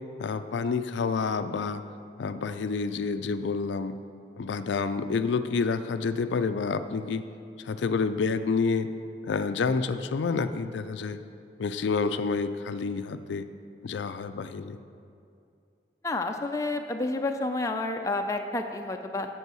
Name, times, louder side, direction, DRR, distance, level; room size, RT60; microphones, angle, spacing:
voice 1, 0.2-1.8 2.2-4.0 4.4-7.2 7.6-8.9 9.2-11.2 11.6-13.4 13.8-14.8, left 4 dB, 80° left, 10 dB, 0.4 m, -28 dB
voice 2, 16.0-19.3, left 2 dB, 15° left, 4 dB, 0.4 m, -30 dB
8.1 x 7.2 x 6.1 m, 2.5 s
head